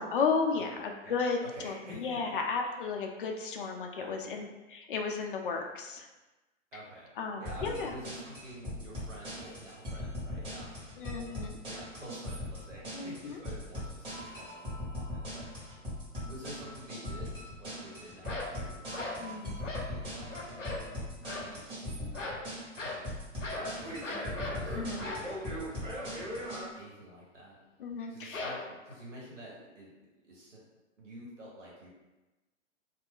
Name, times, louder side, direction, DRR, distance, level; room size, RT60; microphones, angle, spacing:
voice 1, 0.0-6.1 7.2-7.9 11.0-11.5 12.9-13.4 19.2-19.6 24.7-25.1 27.8-28.5, left 5 dB, 45° left, 2 dB, 0.5 m, -34 dB
voice 2, 0.7-2.3 3.6-3.7 4.0-4.4 6.7-7.1 7.4-11.3 11.7-15.8 16.2-22.2 22.8-23.0 23.5-25.9 26.3-27.6 28.1-29.9 30.2-30.6 31.0-31.9, right 1 dB, 75° right, -5 dB, 1.3 m, -49 dB
sound 1, 7.4-26.6, left 1 dB, 15° right, 0.9 m, -40 dB
sound 2, 18.2-18.6 18.9-19.3 19.6-19.9 20.3-20.9 21.2-21.5 22.1-22.5 22.8-23.1 23.4-23.7 24.0-24.6 25.0-25.3 28.3-28.9, left 2 dB, 85° left, 0.6 m, -39 dB
2.4 x 2.1 x 3.7 m, 1.1 s
figure-of-eight pair, 110°, 37 cm